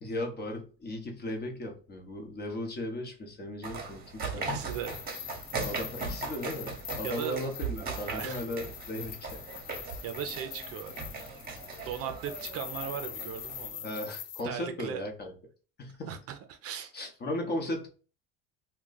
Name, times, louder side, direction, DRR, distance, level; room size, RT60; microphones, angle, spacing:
voice 1, 0.0-4.5 5.6-9.3 13.8-15.3 15.8-16.1 16.9-17.9, left 1 dB, 35° left, 0.9 m, -36 dB
sound 1, 3.6-13.7, right 4 dB, 30° right, 0.9 m, -39 dB
voice 2, 4.2-5.0 7.0-7.5 8.1-8.5 10.0-10.9 11.8-13.9 14.4-15.0 16.1-16.9, right 8 dB, 50° right, 0.5 m, -38 dB
sound 2, 4.6-14.4, left 9 dB, 70° left, 0.5 m, -44 dB
2.2 x 2.2 x 3.8 m
supercardioid pair, 105°, 31 cm